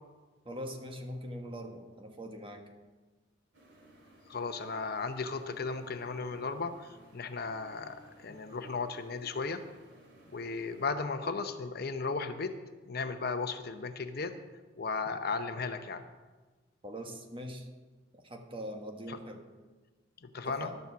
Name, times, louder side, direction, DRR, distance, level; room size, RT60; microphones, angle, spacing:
voice 1, 0.4-2.6 16.8-17.7 18.1-19.4 20.4-20.8, equal, 30° right, 3 dB, 1.3 m, -42 dB
sound 1, 3.5-10.9, right 1 dB, 75° right, 2.6 m, -58 dB
voice 2, 4.3-9.6 10.3-12.5 12.9-14.3 14.8-16.1 19.1-19.2 20.2-20.7, left 4 dB, 55° left, 8 dB, 0.7 m, -35 dB
12.0 x 7.0 x 7.0 m, 1.3 s
head